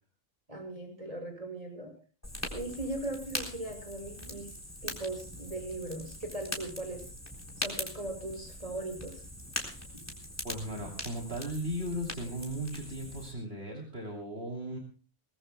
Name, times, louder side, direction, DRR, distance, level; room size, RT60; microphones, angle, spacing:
voice 1, 0.5-1.9 2.5-4.5 4.8-7.0 7.6-9.2, right 2 dB, 30° right, 2 dB, 6.5 m, -39 dB
Fire, 2.2-13.3, equal, 15° left, 3.9 m, -41 dB
voice 2, 10.4-14.8, equal, 55° right, -1 dB, 3.2 m, -37 dB
22.5 x 21.0 x 2.3 m, 0.39 s
omnidirectional pair, 1.2 m